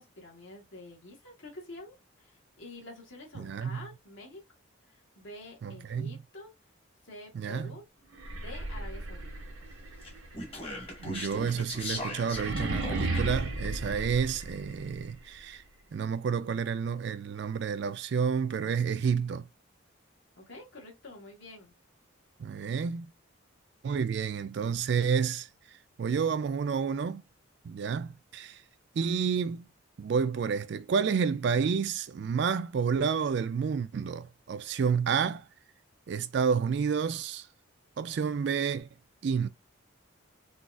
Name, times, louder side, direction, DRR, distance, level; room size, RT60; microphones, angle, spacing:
voice 1, 0.0-4.4 5.2-6.5 7.0-7.9 8.4-9.3 20.4-21.7, left 2 dB, 65° left, 1.4 m, -47 dB
voice 2, 3.3-3.8 5.6-6.2 7.3-7.7 11.0-15.6 15.9-19.5 22.4-23.1 23.8-27.2 27.6-28.6 28.9-29.7 30.0-35.5 36.1-37.5 38.0-38.9 39.2-39.5, right 6 dB, 55° right, 0.3 m, -30 dB
sound 1, 8.1-15.0, right 2 dB, 90° right, 1.0 m, -36 dB
Speech, 10.0-13.5, left 1 dB, 30° left, 1.0 m, -39 dB
3.8 x 2.4 x 2.4 m
head